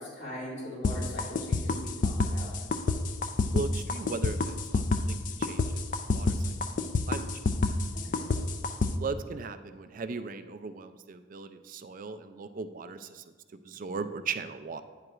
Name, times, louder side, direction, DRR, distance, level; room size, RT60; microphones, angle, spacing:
voice 1, 0.0-2.5 7.9-8.4, equal, 65° left, -4 dB, 2.1 m, -41 dB
sound 1, 0.8-8.9, left 3 dB, 40° left, 0.4 m, -27 dB
voice 2, 3.5-5.8 6.1-6.5 7.1-7.3 9.0-13.2 13.6-14.8, right 4 dB, 40° right, 10 dB, 0.3 m, -38 dB
9.5 x 7.7 x 2.5 m, 1.5 s
head